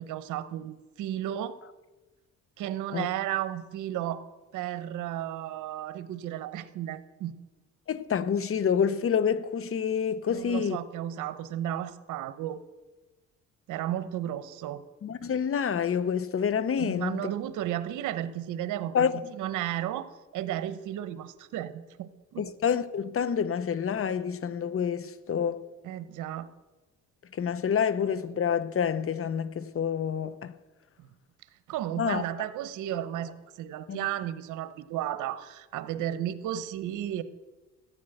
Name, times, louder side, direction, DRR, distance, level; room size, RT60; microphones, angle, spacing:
voice 1, 0.0-1.6 2.6-4.3 4.5-7.3 10.3-12.6 13.7-14.8 16.8-20.1 20.3-22.5 25.8-26.5 31.0-31.1 31.7-37.2, right 12 dB, 90° right, 1.0 m, -33 dB
voice 2, 7.9-10.8 15.0-17.2 18.9-19.2 22.4-25.6 27.4-30.5 32.0-32.2 33.9-34.0, left 7 dB, 45° left, 1.0 m, -28 dB
14.5 x 9.4 x 7.9 m
cardioid pair, 90°, 30 cm